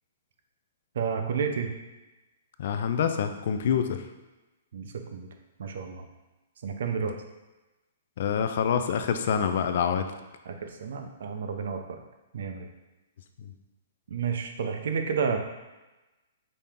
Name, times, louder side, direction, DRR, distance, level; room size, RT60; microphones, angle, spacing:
voice 1, 0.9-1.7 4.7-5.3 5.6-6.1 6.6-7.2 10.4-12.0 12.3-12.7 14.1-15.4, right 6 dB, 60° right, 5 dB, 0.5 m, -31 dB
voice 2, 2.6-4.1 8.2-10.1 13.4-13.5, left 7 dB, 50° left, 8 dB, 0.4 m, -26 dB
5.3 x 2.8 x 3.5 m, 1.1 s
hypercardioid pair, 165°, 0 cm